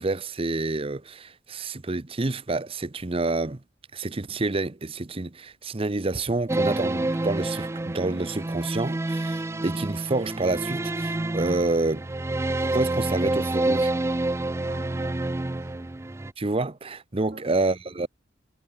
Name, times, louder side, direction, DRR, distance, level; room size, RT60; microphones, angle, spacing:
voice 1, 0.0-3.6 3.9-12.1 12.7-13.9 16.4-18.1, right 2 dB, 30° right, 0.8 m, -28 dB
sound 1, 6.5-16.3, right 2 dB, 15° right, 0.4 m, -28 dB
voice 2, 14.6-16.0 17.2-17.6, right 2 dB, 55° right, 7.6 m, -50 dB
head